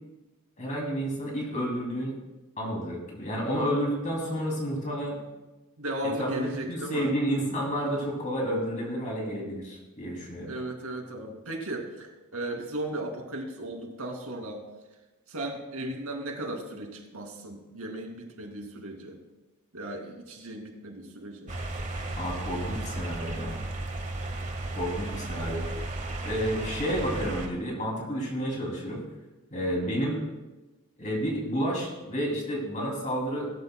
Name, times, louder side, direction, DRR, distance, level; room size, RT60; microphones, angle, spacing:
voice 1, 0.6-2.1 2.6-5.2 6.2-10.5 22.2-23.6 24.7-25.6 26.2-29.0 29.5-30.2 31.0-33.5, equal, 35° left, -2 dB, 2.7 m, -30 dB
voice 2, 5.8-7.1 10.5-14.6 15.3-19.2 19.7-21.5 29.8-30.0, right 1 dB, 80° right, 2 dB, 2.4 m, -36 dB
sound 1, 21.5-27.5, right 2 dB, 35° right, 1.5 m, -34 dB
20.5 x 13.5 x 2.2 m, 1.1 s
head